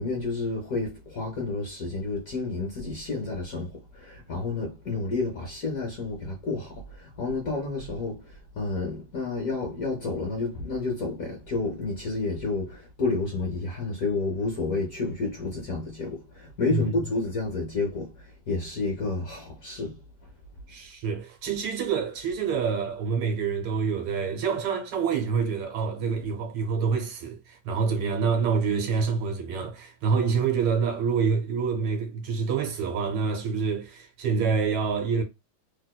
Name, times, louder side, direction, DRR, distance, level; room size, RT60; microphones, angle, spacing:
voice 1, 0.0-20.0, left 3 dB, 60° left, 0.9 m, -30 dB
voice 2, 20.7-35.2, right 5 dB, 80° right, 1.7 m, -27 dB
3.4 x 2.8 x 2.2 m
omnidirectional pair, 2.3 m